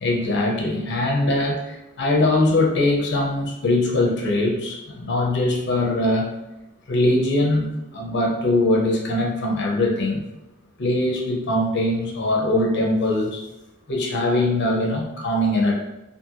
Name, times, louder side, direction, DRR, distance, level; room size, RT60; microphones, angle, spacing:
voice 1, 0.0-6.3 6.9-10.2 10.8-13.4 13.9-15.8, left 1 dB, 50° left, -1 dB, 0.5 m, -21 dB
2.5 x 2.5 x 2.7 m, 0.96 s
head